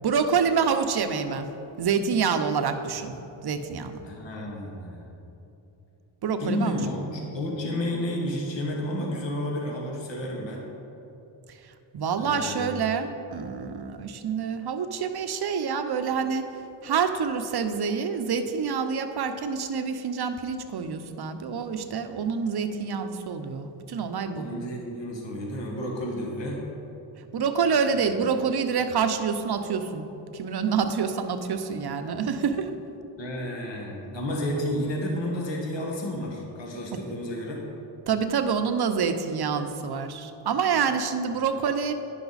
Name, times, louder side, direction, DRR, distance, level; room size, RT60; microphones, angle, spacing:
voice 1, 0.0-1.5 1.8-3.1 3.4-4.0 6.2-6.8 11.9-16.5 16.8-24.5 27.3-30.1 30.3-32.7 38.1-41.9, right 6 dB, 50° right, 8 dB, 0.8 m, -27 dB
voice 2, 4.0-5.2 6.4-10.6 12.1-12.8 24.3-26.6 33.2-37.6 41.3-41.4, left 1 dB, 60° left, -1 dB, 1.6 m, -31 dB
10.0 x 5.8 x 4.1 m, 3.0 s
cardioid pair, 55°, 49 cm